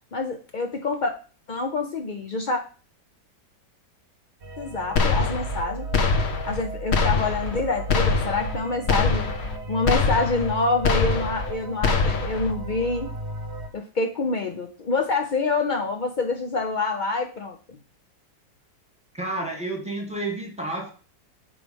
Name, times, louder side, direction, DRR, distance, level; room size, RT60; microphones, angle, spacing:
voice 1, 0.1-1.1 1.5-2.6 4.6-5.9 6.4-9.3 9.7-13.1 13.7-17.6, left 3 dB, 75° left, 4 dB, 0.4 m, -26 dB
sound 1, 4.4-13.7, right 2 dB, 40° right, 1.2 m, -35 dB
sound 2, 5.0-5.6 5.9-6.6 6.9-7.6 7.9-8.6 8.9-9.6 9.9-10.6 10.8-11.5 11.8-12.5, left 4 dB, 45° left, 0.9 m, -23 dB
voice 2, 19.1-20.9, right 2 dB, 5° right, 1 dB, 1.5 m, -30 dB
8.7 x 3.3 x 5.2 m, 0.38 s
omnidirectional pair, 1.9 m